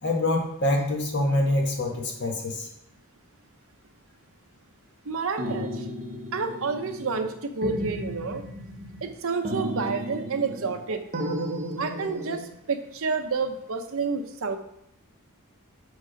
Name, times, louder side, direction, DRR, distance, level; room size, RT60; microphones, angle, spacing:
voice 1, 0.0-2.7, left 1 dB, 50° left, 0 dB, 1.5 m, -25 dB
voice 2, 5.0-5.9 6.3-8.4 9.0-11.0 11.8-14.6, right 4 dB, 65° right, 8 dB, 0.7 m, -29 dB
sound 1, 5.4-7.3 7.6-9.1 9.4-10.8 11.1-12.5, equal, 35° right, 1.0 m, -34 dB
5.9 x 5.1 x 5.1 m, 0.74 s
head